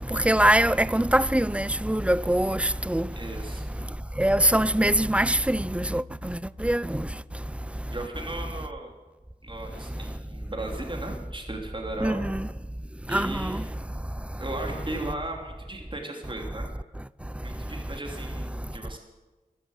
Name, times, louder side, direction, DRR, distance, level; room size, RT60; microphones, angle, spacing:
voice 1, 0.3-2.6 2.9-3.0 4.2-6.0 6.6-6.8 12.0-12.4 13.1-13.3, right 1 dB, 10° right, 0.4 m, -22 dB
voice 2, 3.1-3.7 7.9-8.9 9.4-12.2 13.1-13.6 14.4-16.6 17.4-19.0, right 2 dB, 35° right, 3.2 m, -36 dB
sound 1, 4.8-8.0, equal, 20° left, 2.8 m, -47 dB
14.0 x 12.5 x 8.1 m
wide cardioid pair, 50°, 15 cm